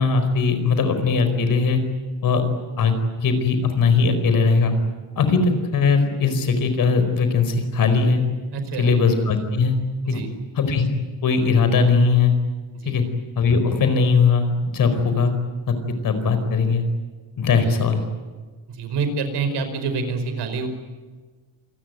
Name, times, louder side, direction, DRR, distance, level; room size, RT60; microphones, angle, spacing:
voice 1, 0.0-1.8 2.2-2.4 2.8-4.7 5.2-8.2 8.8-9.8 10.1-10.2 10.6-10.9 11.2-12.3 12.8-13.0 13.4-15.3 15.7-15.8 16.0-16.8 17.4-18.0, left 4 dB, 50° left, 8 dB, 4.8 m, -19 dB
voice 2, 8.5-8.9 10.0-10.3 12.7-12.9 17.6-17.7 18.7-20.7, right 4 dB, 70° right, 8 dB, 5.1 m, -27 dB
27.5 x 19.5 x 9.6 m, 1.3 s
cardioid pair, 160°, 43 cm